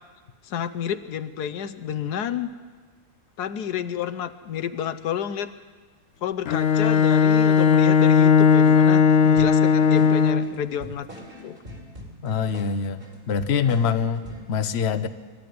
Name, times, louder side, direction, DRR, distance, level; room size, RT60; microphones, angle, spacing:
voice 1, 0.4-2.5 3.4-5.5 6.2-11.1 11.4-11.6, left 9 dB, 85° left, 10 dB, 1.4 m, -30 dB
Bowed string instrument, 6.5-10.6, left 6 dB, 65° left, 1.4 m, -17 dB
sound 1, 9.4-14.5, equal, 35° right, 3.7 m, -43 dB
voice 2, 12.2-13.0 13.3-15.1, left 6 dB, 50° left, 10 dB, 1.0 m, -24 dB
24.5 x 13.0 x 9.5 m, 1.5 s
omnidirectional pair, 1.7 m